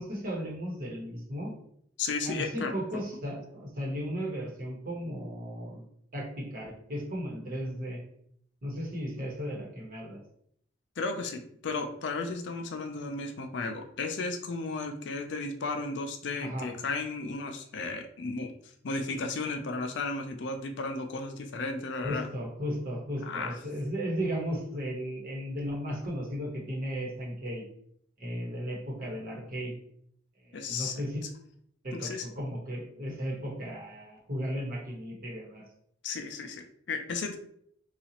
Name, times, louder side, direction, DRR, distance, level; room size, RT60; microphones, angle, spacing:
voice 1, 0.0-1.5 2.2-5.8 6.1-8.0 8.6-10.2 16.4-16.7 22.0-27.6 28.2-29.7 30.4-31.2 31.8-35.6, equal, 50° right, -2 dB, 1.1 m, -35 dB
voice 2, 2.0-2.7 11.0-18.5 18.8-22.3 23.2-23.6 30.5-31.0 31.9-32.3 36.0-37.4, left 3 dB, 70° left, 6 dB, 0.4 m, -34 dB
4.0 x 2.4 x 2.8 m, 0.69 s
head